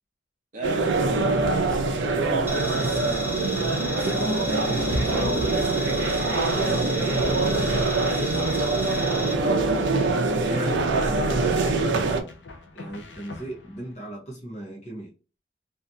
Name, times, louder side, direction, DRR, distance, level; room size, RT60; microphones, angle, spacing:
voice 1, 0.5-0.8 6.6-9.3, right 1 dB, 45° right, 0.7 m, -36 dB
sound 1, 0.6-12.2, right 3 dB, 85° right, 0.5 m, -24 dB
voice 2, 2.0-5.9 10.4-12.0 12.7-15.1, right 1 dB, 35° left, 0.8 m, -37 dB
sound 2, 2.5-9.3, left 1 dB, 10° right, 0.4 m, -34 dB
sound 3, 11.3-14.0, left 2 dB, 80° left, 0.5 m, -44 dB
2.7 x 2.4 x 2.3 m
head